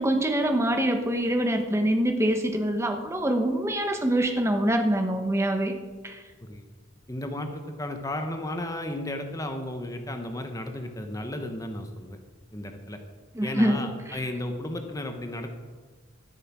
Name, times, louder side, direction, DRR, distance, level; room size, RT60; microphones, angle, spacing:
voice 1, 0.0-5.7 6.0-6.2 13.3-14.2, right 1 dB, 15° right, 5 dB, 1.0 m, -25 dB
voice 2, 7.1-12.2 12.5-13.0 13.4-15.5, left 1 dB, 15° left, 5 dB, 0.9 m, -34 dB
13.0 x 8.0 x 6.0 m, 1.4 s
head